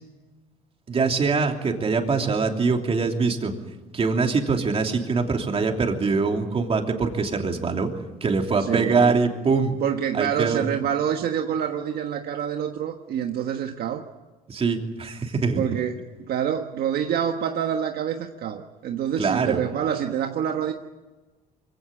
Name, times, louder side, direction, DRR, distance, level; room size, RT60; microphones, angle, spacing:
voice 1, 0.9-3.5 3.9-7.9 8.2-9.8 10.1-10.6 14.5-15.6 19.2-19.6, right 4 dB, 35° right, 3 dB, 3.1 m, -23 dB
voice 2, 8.6-9.2 9.8-14.1 15.6-20.7, right 9 dB, 65° right, 5 dB, 1.4 m, -27 dB
23.5 x 16.5 x 9.9 m, 1.2 s
cardioid pair, 110°, 17 cm